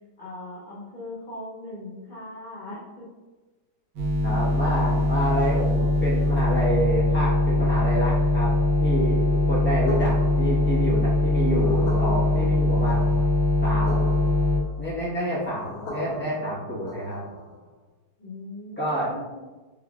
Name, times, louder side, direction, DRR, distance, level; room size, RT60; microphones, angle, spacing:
voice 1, 0.2-3.1 11.7-12.6 18.2-19.4, left 1 dB, 45° left, -7 dB, 0.6 m, -40 dB
sound 1, 4.0-14.6, left 1 dB, 85° right, 1.6 m, -22 dB
voice 2, 4.2-13.1 13.6-14.0 14.8-17.2 18.8-19.1, equal, 10° left, -8 dB, 1.0 m, -28 dB
sound 2, 9.9-17.7, left 2 dB, 65° left, 1.2 m, -39 dB
4.6 x 3.3 x 2.4 m, 1.2 s
omnidirectional pair, 1.9 m